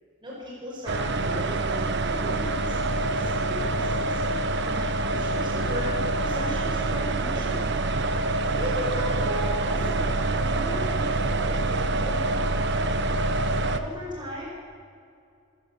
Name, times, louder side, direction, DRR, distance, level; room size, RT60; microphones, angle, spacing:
voice 1, 0.2-2.8 3.2-5.9 6.2-7.6 8.4-13.0 13.7-14.5, left 1 dB, 25° right, -4 dB, 5.3 m, -36 dB
sound 1, 0.9-13.8, right 2 dB, 60° right, 1.2 m, -26 dB
27.0 x 14.5 x 7.4 m, 2.4 s
head